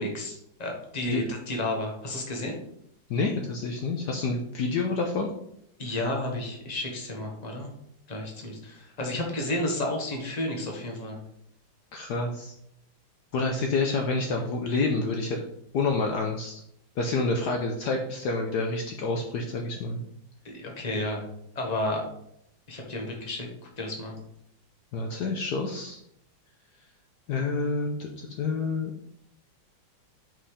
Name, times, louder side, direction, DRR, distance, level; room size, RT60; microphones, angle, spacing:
voice 1, 0.0-2.6 5.8-7.7 8.1-11.2 20.4-21.3 21.5-22.0 22.7-23.5 23.8-24.2, left 1 dB, 25° left, 1 dB, 1.4 m, -31 dB
voice 2, 3.1-5.3 11.9-12.5 13.3-15.4 15.7-16.6 17.0-20.0 24.9-26.0 27.3-28.9, left 3 dB, 65° left, 2 dB, 1.2 m, -28 dB
5.7 x 5.4 x 4.9 m, 0.73 s
omnidirectional pair, 2.1 m